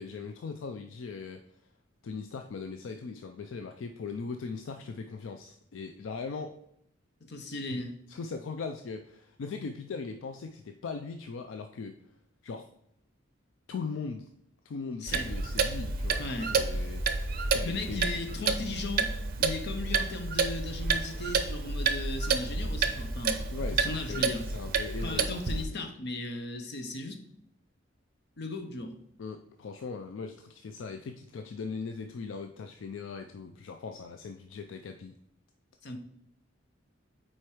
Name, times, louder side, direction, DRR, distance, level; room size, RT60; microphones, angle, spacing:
voice 1, 0.0-1.4 2.0-6.6 7.7-7.8 8.1-12.0 12.4-12.7 13.7-14.3 14.6-18.0 23.5-25.9 29.2-35.2, left 4 dB, 75° left, 6 dB, 0.4 m, -39 dB
voice 2, 7.2-8.0 15.0-15.3 16.2-16.6 17.6-19.1 19.4-24.4 25.0-27.2 28.4-29.0 35.8-36.0, left 2 dB, 60° left, 6 dB, 0.8 m, -37 dB
Clock, 15.1-25.6, right 4 dB, 50° right, 0.6 m, -30 dB
4.5 x 4.4 x 4.8 m, 0.73 s
head